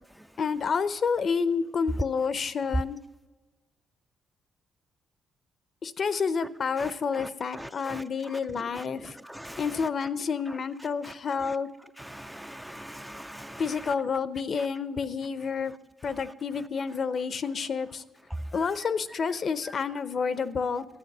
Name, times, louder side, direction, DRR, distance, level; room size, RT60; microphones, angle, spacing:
voice 1, 0.4-3.0 5.8-9.2 9.6-11.7 13.6-15.7 16.0-18.0 18.5-20.9, left 5 dB, 50° left, 14 dB, 0.6 m, -29 dB
voice 2, 7.6-8.0 9.3-9.6 12.1-13.6, equal, 5° right, 10 dB, 0.4 m, -41 dB
12.5 x 8.9 x 6.0 m, 1.3 s
cardioid pair, 90°, 0 cm